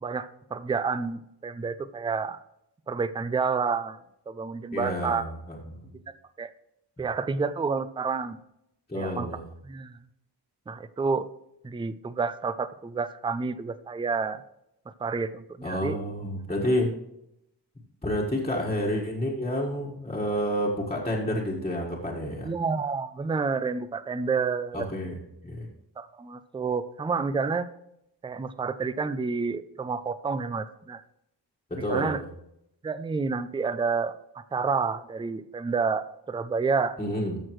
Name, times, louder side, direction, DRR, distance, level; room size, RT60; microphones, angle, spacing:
voice 1, 0.0-2.4 2.9-4.0 4.3-5.3 6.1-6.5 7.0-8.4 9.0-9.3 9.6-10.0 10.7-11.3 11.6-14.4 15.0-16.0 18.4-18.5 22.4-24.9 26.0-27.7 28.2-31.0 31.9-32.2 32.8-37.0, right 5 dB, 15° right, 14 dB, 0.3 m, -29 dB
voice 2, 4.7-5.8 8.9-9.4 15.6-16.9 18.0-22.5 24.7-25.7 31.7-32.2 37.0-37.4, equal, 15° left, -5 dB, 1.6 m, -29 dB
13.5 x 6.4 x 3.1 m, 0.81 s
wide cardioid pair, 105°, 43 cm